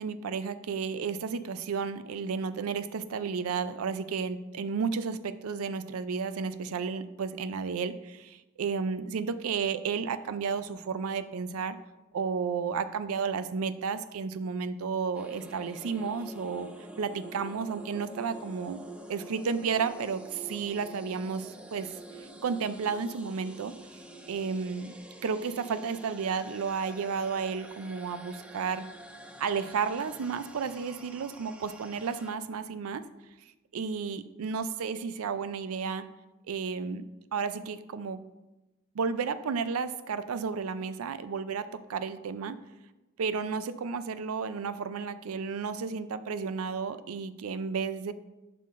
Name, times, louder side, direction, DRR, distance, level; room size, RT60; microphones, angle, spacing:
voice 1, 0.0-11.8 12.1-16.7 17.0-18.8 19.1-23.7 24.3-24.9 25.2-28.9 29.4-33.0 33.7-36.1 36.5-37.0 37.3-38.2 38.9-42.6 43.2-48.1, right 5 dB, 80° right, 13 dB, 0.4 m, -32 dB
sound 1, 15.1-32.3, right 2 dB, 5° right, 0.4 m, -47 dB
11.5 x 5.7 x 2.5 m, 1.0 s
head